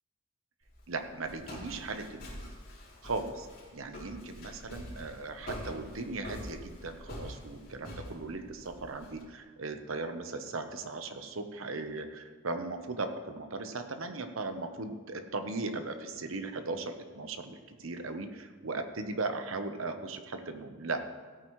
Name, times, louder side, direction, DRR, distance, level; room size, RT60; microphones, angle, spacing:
Walk footsteps, 0.6-9.2, left 1 dB, 45° left, 3.3 m, -45 dB
voice 1, 0.9-2.5 3.0-3.5 3.7-21.1, right 3 dB, 75° right, 7 dB, 0.9 m, -38 dB
16.5 x 8.9 x 3.2 m, 1.5 s
head